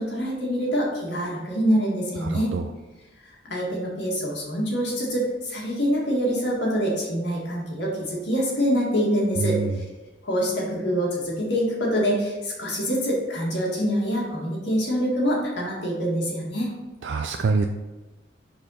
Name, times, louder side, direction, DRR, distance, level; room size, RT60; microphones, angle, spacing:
voice 1, 0.0-2.5 3.4-9.8 10.2-16.7, equal, 65° left, -3 dB, 2.0 m, -25 dB
voice 2, 2.3-2.6 9.4-9.7 17.0-17.6, right 4 dB, 65° right, 4 dB, 0.4 m, -24 dB
5.3 x 4.2 x 5.6 m, 1.2 s
head